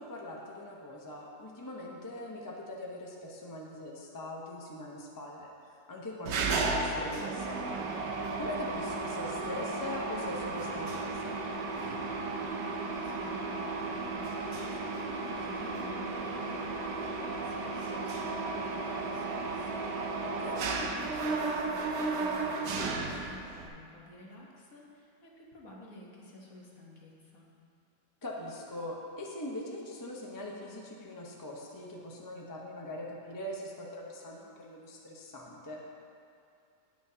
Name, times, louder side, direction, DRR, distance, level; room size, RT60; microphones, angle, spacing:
voice 1, 0.0-7.8 8.4-11.4 20.2-20.7 28.2-35.8, left 1 dB, 15° left, -2 dB, 0.7 m, -42 dB
Mechanisms, 6.3-23.7, right 3 dB, 85° right, 1.4 m, -34 dB
voice 2, 12.5-20.3 20.6-27.4, left 1 dB, 60° left, -3 dB, 1.6 m, -52 dB
18.0 x 6.2 x 2.8 m, 2.5 s
omnidirectional pair, 1.8 m